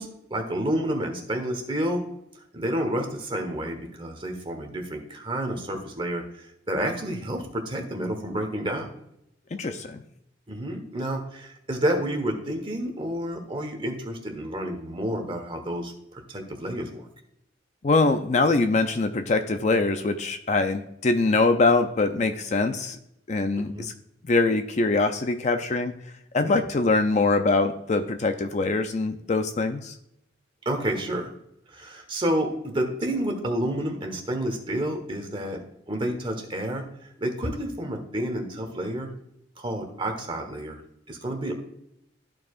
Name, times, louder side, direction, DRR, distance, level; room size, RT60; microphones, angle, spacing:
voice 1, 0.0-2.0 2.5-8.9 10.5-17.1 23.6-23.9 26.4-26.6 30.6-31.3 31.7-35.6 35.9-39.1 39.6-40.8 41.1-41.5, right 1 dB, 25° right, 4 dB, 1.2 m, -30 dB
voice 2, 9.5-10.0 17.8-23.0 23.3-23.9 24.2-25.9 26.3-29.9, left 3 dB, 40° left, 7 dB, 0.5 m, -23 dB
13.5 x 4.7 x 2.4 m, 0.79 s
head